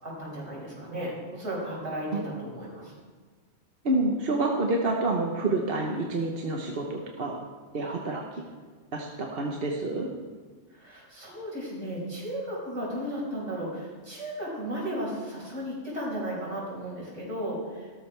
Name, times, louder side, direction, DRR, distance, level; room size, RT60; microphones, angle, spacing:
voice 1, 0.0-2.9 10.7-17.9, equal, 75° right, -5 dB, 5.4 m, -35 dB
voice 2, 3.8-7.4 7.7-8.2 8.9-10.1, right 2 dB, 55° right, 0 dB, 1.3 m, -28 dB
17.0 x 13.0 x 3.4 m, 1.5 s
omnidirectional pair, 1.2 m